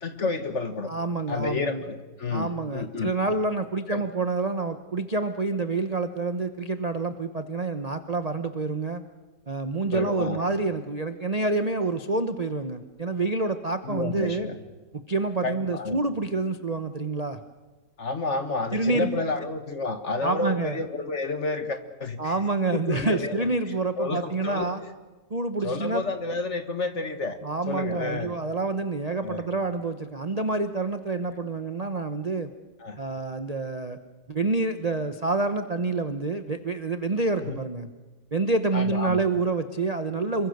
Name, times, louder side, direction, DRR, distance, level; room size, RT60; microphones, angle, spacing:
voice 1, 0.0-0.9 1.3-3.1 3.9-4.0 9.9-10.4 13.8-14.6 15.4-16.0 18.0-22.3 22.7-23.5 24.0-24.7 25.6-27.4 27.7-28.3 29.2-29.4 32.8-33.0 37.4-37.6 38.7-39.2, left 3 dB, 40° left, 8 dB, 1.7 m, -30 dB
voice 2, 0.9-1.8 2.3-9.0 9.5-14.5 15.1-17.4 18.7-19.1 20.2-20.8 22.2-24.8 25.3-26.0 27.4-32.5 33.0-34.0 34.3-37.9 38.3-40.5, right 3 dB, 35° right, 9 dB, 0.6 m, -27 dB
27.0 x 23.0 x 6.6 m, 1.2 s
omnidirectional pair, 2.1 m